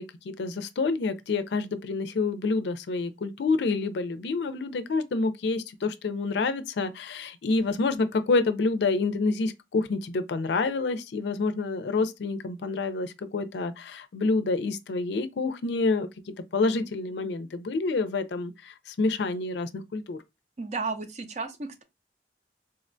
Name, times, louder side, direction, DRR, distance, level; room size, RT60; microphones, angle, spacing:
voice 1, 0.0-20.2, left 3 dB, 75° left, 0.4 m, -28 dB
voice 2, 20.6-21.8, right 4 dB, 40° right, 0.6 m, -33 dB
3.8 x 2.2 x 2.5 m
head